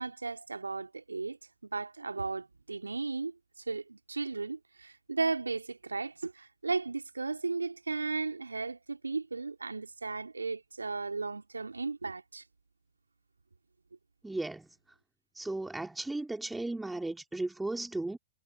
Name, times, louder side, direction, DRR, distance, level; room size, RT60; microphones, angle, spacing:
voice 1, 0.0-1.4 1.6-3.3 3.7-12.4, right 4 dB, 85° right, 2.8 m, -35 dB
voice 2, 14.2-14.7 15.4-18.2, right 2 dB, 5° right, 3.6 m, -35 dB
figure-of-eight pair, 105°, 0 cm